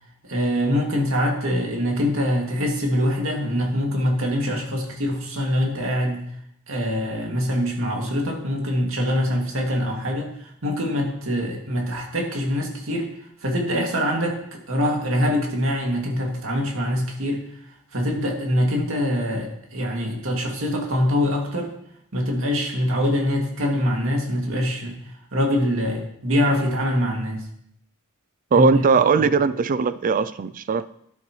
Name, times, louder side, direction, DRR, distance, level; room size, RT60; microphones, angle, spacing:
voice 1, 0.3-6.2 6.7-13.1 13.4-17.5 17.9-21.7 22.1-24.9 25.3-27.5 28.5-28.8 29.2-29.3, equal, 70° right, 0 dB, 2.4 m, -24 dB
voice 2, 28.5-30.9, right 4 dB, 40° right, 15 dB, 0.4 m, -19 dB
13.0 x 10.5 x 3.2 m, 0.72 s
head